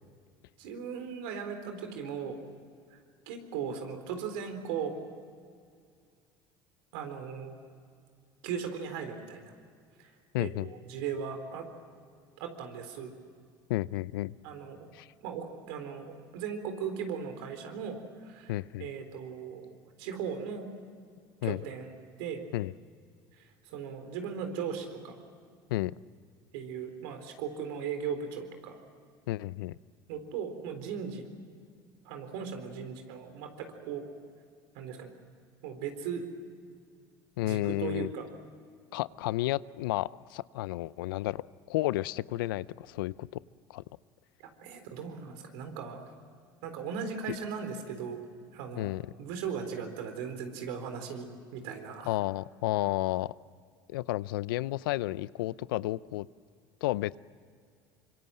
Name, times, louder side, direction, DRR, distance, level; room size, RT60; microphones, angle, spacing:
voice 1, 0.6-2.4 2.9-3.0 3.3-4.9 6.9-7.6 8.4-9.5 10.0-10.1 10.4-11.6 12.4-13.1 14.4-14.8 15.2-18.5 18.8-19.7 20.0-20.7 21.4-22.4 23.4-25.1 26.5-28.8 30.1-31.3 32.0-34.1 34.7-35.1 35.6-36.3 37.4-38.3 44.4-46.0 46.6-48.2 48.5-48.9 49.2-52.1, right 7 dB, 75° right, 6 dB, 4.0 m, -38 dB
voice 2, 10.3-10.7 13.7-14.4 14.9-15.1 18.5-18.9 21.4-21.6 22.5-22.7 25.7-25.9 29.3-29.8 37.4-38.1 38.9-43.4 43.7-43.8 48.8-49.0 52.0-53.3 53.9-56.3 56.8-57.2, left 17 dB, 85° left, 20 dB, 0.5 m, -32 dB
25.5 x 24.0 x 7.7 m, 2.1 s
hypercardioid pair, 80°, 11 cm